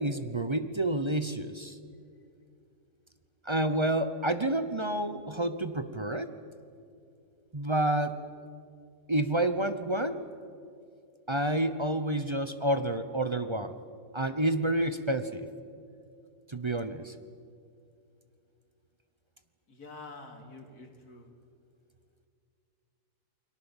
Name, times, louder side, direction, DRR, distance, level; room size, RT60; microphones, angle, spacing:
voice 1, 0.0-1.8 3.4-6.4 7.5-8.2 9.1-10.3 11.3-13.8 14.1-15.5 16.5-17.1, right 1 dB, 25° right, 10 dB, 0.7 m, -29 dB
voice 2, 19.8-21.2, left 3 dB, 70° left, 3 dB, 3.5 m, -47 dB
29.5 x 22.5 x 7.3 m, 2.5 s
omnidirectional pair, 1.7 m